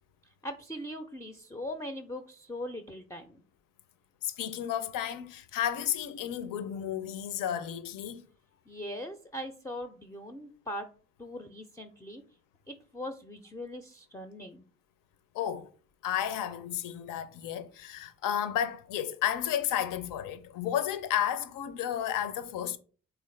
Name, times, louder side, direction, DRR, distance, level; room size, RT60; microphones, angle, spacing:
voice 1, 0.2-3.4 8.7-10.9 11.2-12.2 12.7-14.6, left 1 dB, 10° left, 0.4 m, -40 dB
voice 2, 4.2-8.2 15.3-15.7 16.0-22.8, left 10 dB, 65° left, 0.5 m, -32 dB
3.4 x 2.4 x 3.2 m
hypercardioid pair, 55°, 36 cm